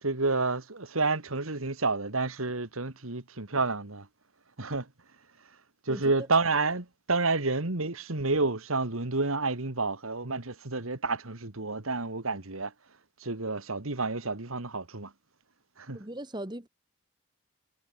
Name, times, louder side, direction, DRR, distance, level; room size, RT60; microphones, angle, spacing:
voice 1, 0.0-4.1 4.6-4.9 5.9-12.7 13.2-15.1 15.8-16.0, right 3 dB, 85° right, 2.3 m, -29 dB
voice 2, 5.9-6.3 15.9-16.7, right 1 dB, 20° right, 1.7 m, -38 dB
head